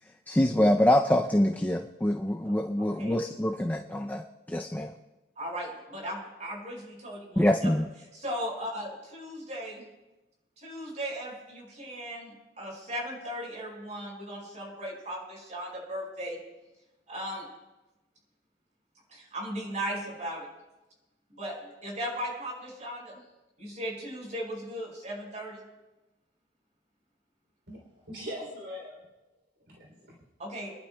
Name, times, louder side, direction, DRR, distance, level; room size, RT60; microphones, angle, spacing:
voice 1, 0.3-4.2 4.5-4.9 7.4-7.9, left 1 dB, 10° left, 3 dB, 0.4 m, -25 dB
voice 2, 2.8-3.1 5.4-7.7 8.1-9.8 10.6-16.4 17.1-17.4 19.1-20.5 21.3-23.2 23.6-25.6 30.4-30.7, equal, 45° right, -1 dB, 5.1 m, -37 dB
voice 3, 27.7-29.1 29.6-30.2, equal, 80° right, -2 dB, 3.1 m, -42 dB
28.5 x 11.5 x 2.2 m, 1.0 s
head